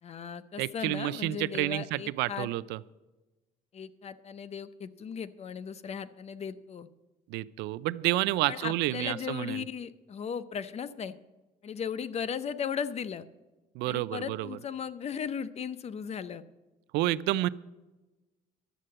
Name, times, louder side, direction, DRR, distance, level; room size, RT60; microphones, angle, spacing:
voice 1, 0.0-2.5 3.7-6.9 8.5-11.1 11.6-13.3 13.8-16.4, left 7 dB, 40° left, 14 dB, 0.6 m, -37 dB
voice 2, 0.6-2.8 7.3-9.6 13.7-14.5 16.9-17.5, right 17 dB, 90° right, 18 dB, 0.4 m, -29 dB
11.5 x 7.5 x 7.7 m, 1.1 s
cardioid pair, 110°, 17 cm